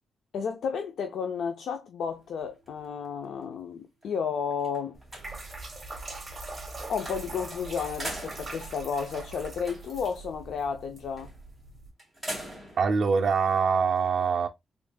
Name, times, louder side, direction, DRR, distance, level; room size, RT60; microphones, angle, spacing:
voice 1, 0.3-5.0 6.9-11.3, left 6 dB, 70° left, 0.4 m, -32 dB
sound 1, 2.0-3.5 4.0-4.1 4.5-5.7 7.1-7.5 7.8-10.1 11.2-11.5 12.0-12.9, right 1 dB, 5° left, 1.8 m, -42 dB
sound 2, 4.9-11.9, right 2 dB, 20° right, 1.3 m, -42 dB
voice 2, 12.8-14.5, right 5 dB, 45° right, 0.5 m, -24 dB
3.6 x 3.6 x 2.2 m
wide cardioid pair, 155°, 0 cm